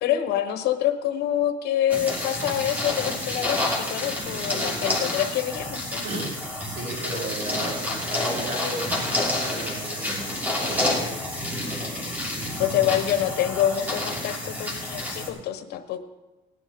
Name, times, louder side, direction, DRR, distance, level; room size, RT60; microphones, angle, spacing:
voice 1, 0.0-6.0 12.6-16.0, left 11 dB, 75° left, 9 dB, 1.2 m, -26 dB
sound 1, 1.9-15.3, left 1 dB, 10° right, 3.0 m, -29 dB
voice 2, 6.6-11.7 12.6-12.9, right 1 dB, 80° right, -4 dB, 4.9 m, -35 dB
18.0 x 10.0 x 3.8 m, 1.1 s
cardioid pair, 110°, 17 cm